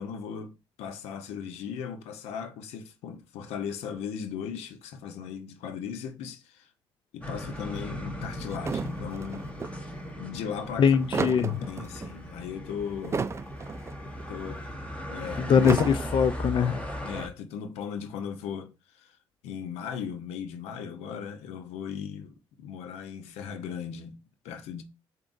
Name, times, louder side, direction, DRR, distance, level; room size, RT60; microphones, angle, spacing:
voice 1, 0.0-6.7 7.1-9.9 10.2-11.3 11.7-13.4 14.3-14.7 15.1-15.7 17.0-19.2 19.4-24.8, left 7 dB, 85° left, 0.8 m, -38 dB
sound 1, 7.2-17.3, equal, 15° left, 1.2 m, -38 dB
sound 2, 8.5-9.7 10.8-12.1 12.9-13.9 14.2-14.3 15.5-16.5, right 5 dB, 25° right, 0.4 m, -33 dB
voice 2, 10.8-11.5 15.4-16.8, left 7 dB, 50° left, 0.4 m, -22 dB
7.0 x 2.8 x 2.6 m
supercardioid pair, 75°, 11 cm